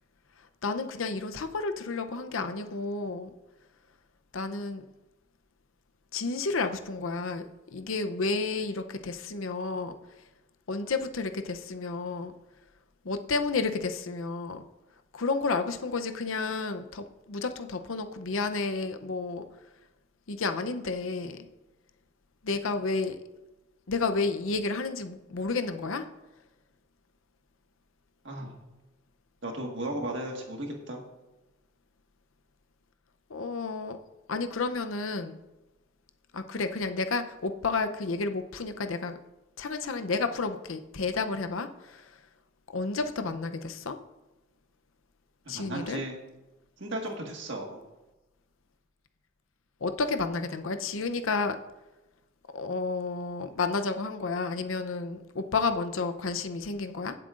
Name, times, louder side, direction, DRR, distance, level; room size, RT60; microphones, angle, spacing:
voice 1, 0.6-3.3 4.3-4.8 6.1-7.4 7.7-9.9 10.7-12.3 13.0-14.6 15.1-19.5 20.3-21.4 22.4-23.2 23.9-26.1 33.3-34.0 34.3-35.4 36.3-39.2 39.6-42.1 42.7-44.0 45.5-46.0 49.8-51.6 52.5-57.2, left 4 dB, 75° left, 8 dB, 0.7 m, -31 dB
voice 2, 29.4-31.0 45.5-46.2 46.8-47.8, right 1 dB, 60° right, 1 dB, 1.7 m, -35 dB
17.0 x 7.6 x 2.5 m, 1.0 s
head